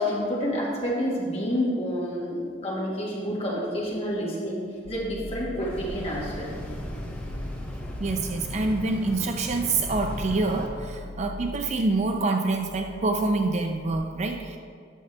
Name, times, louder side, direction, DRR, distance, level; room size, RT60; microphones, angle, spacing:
voice 1, 0.0-6.5, equal, 30° left, -5 dB, 1.8 m, -29 dB
sound 1, 4.8-13.9, left 1 dB, 50° left, 0.6 m, -41 dB
sound 2, 5.7-10.7, equal, 10° left, 0.8 m, -37 dB
voice 2, 8.0-14.6, right 3 dB, 35° right, 5 dB, 0.4 m, -26 dB
9.2 x 6.8 x 3.4 m, 2.2 s
head